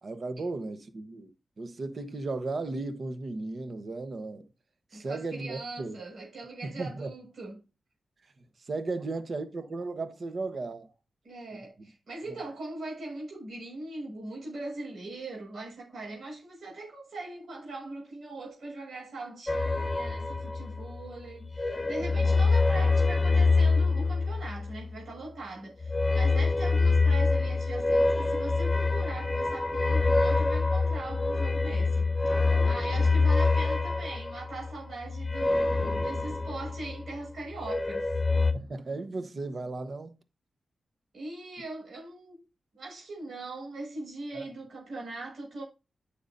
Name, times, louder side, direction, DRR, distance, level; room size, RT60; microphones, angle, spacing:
voice 1, 0.0-4.5 4.9-6.0 6.6-7.1 8.7-10.9 11.5-11.9 12.3-12.4 22.0-22.4 31.7-31.8 32.5-32.7 38.5-40.1 44.3-44.5, right 3 dB, 50° right, 1.1 m, -36 dB
voice 2, 4.9-7.6 11.2-32.1 32.4-38.1 41.1-42.4 42.7-45.6, right 2 dB, 70° right, 5.8 m, -41 dB
sound 1, 19.5-21.1 21.4-25.0 25.8-37.2 37.5-38.5, left 3 dB, 25° left, 0.9 m, -26 dB
9.5 x 7.0 x 2.7 m
wide cardioid pair, 105°, 0 cm